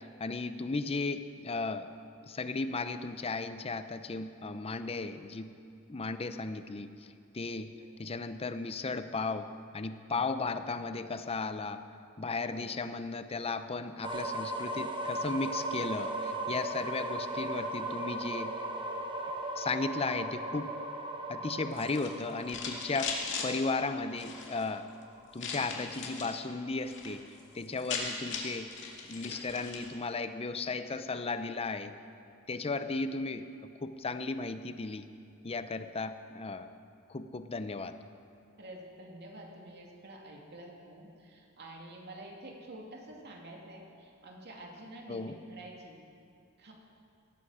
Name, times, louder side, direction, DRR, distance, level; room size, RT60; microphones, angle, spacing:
voice 1, 0.2-1.9 2.3-5.6 5.9-6.9 7.3-9.5 9.7-11.8 12.2-18.6 19.6-20.7 21.3-24.9 25.3-28.7 29.1-32.0 32.5-33.5 33.8-35.1 35.4-36.7 37.1-37.9 45.1-45.4, left 3 dB, 30° left, 10 dB, 0.6 m, -35 dB
voice 2, 7.8-8.2 12.4-12.8 38.6-46.0 46.6-46.7, right 1 dB, 50° right, 0 dB, 2.4 m, -49 dB
sound 1, 14.0-25.8, right 1 dB, 25° right, 1.1 m, -37 dB
sound 2, 21.7-23.5 24.1-24.6 25.4-26.4 26.7-27.1 27.4-27.5 27.7-29.9, left 5 dB, 60° left, 2.2 m, -38 dB
18.0 x 14.0 x 4.9 m, 2.5 s
head